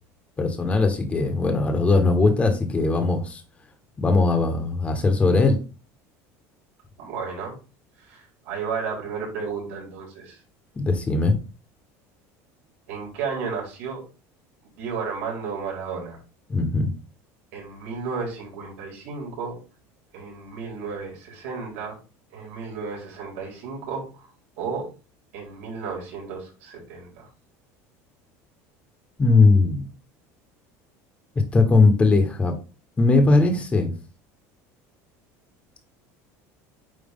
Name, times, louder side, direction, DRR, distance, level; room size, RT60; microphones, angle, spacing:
voice 1, 0.4-3.4 4.0-5.6 10.7-11.4 16.5-16.9 29.2-29.9 31.5-32.5 33.0-33.9, left 3 dB, 15° left, 6 dB, 1.2 m, -19 dB
voice 2, 7.0-7.6 8.0-10.4 12.9-14.0 14.8-16.2 17.5-19.6 20.1-22.0 22.3-24.3 24.6-24.9 25.3-27.3, right 5 dB, 85° right, -1 dB, 3.9 m, -33 dB
8.9 x 3.1 x 3.8 m, 0.33 s
cardioid pair, 145°, 7 cm